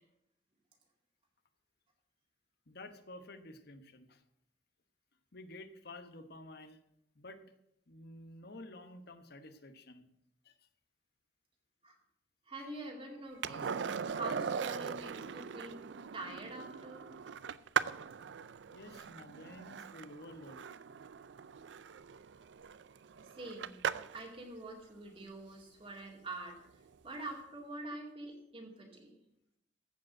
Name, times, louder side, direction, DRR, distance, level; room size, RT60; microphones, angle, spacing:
voice 1, 2.7-4.2 5.3-6.8 7.1-7.4 7.9-10.1 10.4-10.7 18.7-20.7, left 1 dB, 60° left, 8 dB, 1.1 m, -51 dB
voice 2, 12.5-13.7 14.1-15.8 16.1-17.0 23.4-23.8 24.1-26.6 27.0-29.2, right 2 dB, 30° right, 0 dB, 2.2 m, -45 dB
Skateboard, 13.4-24.3 26.9-27.0, right 7 dB, 70° right, 0.4 m, -40 dB
14.5 x 5.2 x 7.7 m, 0.81 s
head